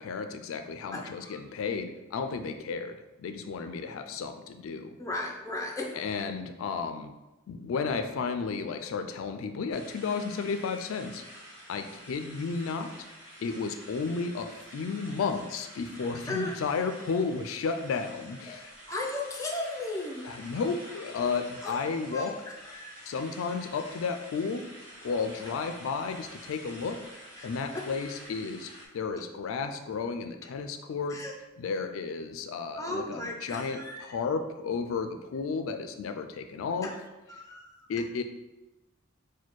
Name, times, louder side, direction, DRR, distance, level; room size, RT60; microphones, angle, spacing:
voice 1, 0.0-5.0 5.9-7.1 7.5-11.2 11.7-12.9 13.4-18.7 20.2-22.3 23.1-24.6 25.0-27.0 27.4-31.2 31.6-36.9 37.9-38.2, left 5 dB, 80° left, 7 dB, 0.3 m, -33 dB
voice 2, 0.9-1.4 5.0-6.2 16.3-16.6 18.5-18.6 18.9-20.2 21.2-21.3 21.6-21.8 22.1-23.2 27.4-27.5 27.7-27.9 31.1-31.3 32.8-34.2 36.8-37.0 37.3-37.9, left 2 dB, 15° left, -1 dB, 0.5 m, -36 dB
sound 1, 9.7-28.9, equal, 40° right, 1.4 m, -48 dB
4.1 x 2.2 x 4.6 m, 1.0 s
head